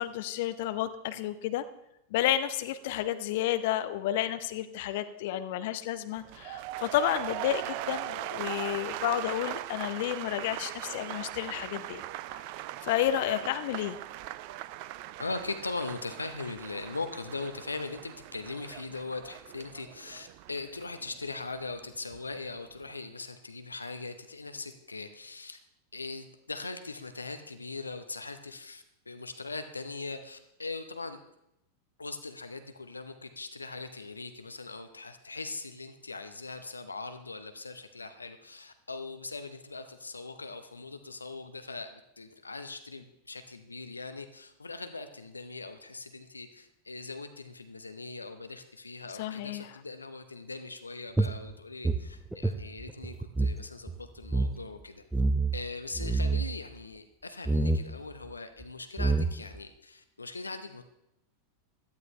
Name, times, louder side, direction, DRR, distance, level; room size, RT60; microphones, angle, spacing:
voice 1, 0.0-1.6 2.1-12.0 12.3-12.4 12.8-14.0 49.2-49.7, left 12 dB, 50° left, 11 dB, 0.7 m, -31 dB
sound 1, 6.2-22.2 22.5-23.0, right 15 dB, 45° right, 0.5 m, -40 dB
voice 2, 15.2-25.6 25.9-31.2 32.0-55.0 55.5-60.8, left 3 dB, 80° left, 9 dB, 0.9 m, -40 dB
sound 2, 51.2-53.6 53.9-54.0 54.2-54.5 55.1-55.6 55.9-56.5 57.5-57.9 58.6-58.7 59.0-59.6, right 2 dB, 5° right, 0.6 m, -27 dB
17.0 x 12.0 x 3.2 m, 0.82 s
figure-of-eight pair, 90°, 0 cm